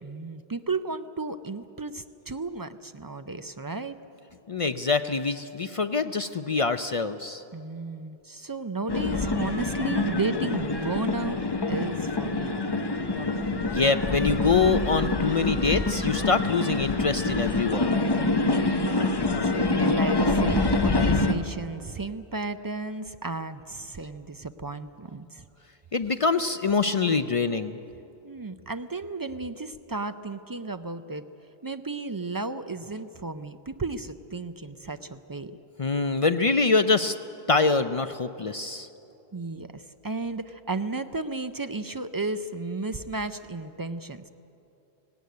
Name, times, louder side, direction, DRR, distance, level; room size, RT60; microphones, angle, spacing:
voice 1, 0.0-3.9 7.5-11.4 11.7-12.6 18.1-19.0 19.4-25.4 28.2-31.2 31.6-35.5 39.3-44.3, right 3 dB, 35° right, 10 dB, 0.3 m, -34 dB
voice 2, 4.5-7.4 13.7-18.0 25.9-27.8 35.8-37.2 37.5-38.9, left 4 dB, 45° left, 10 dB, 0.4 m, -25 dB
sound 1, 8.9-21.3, left 2 dB, 25° left, 0.8 m, -26 dB
18.0 x 17.5 x 9.4 m, 2.9 s
omnidirectional pair, 1.1 m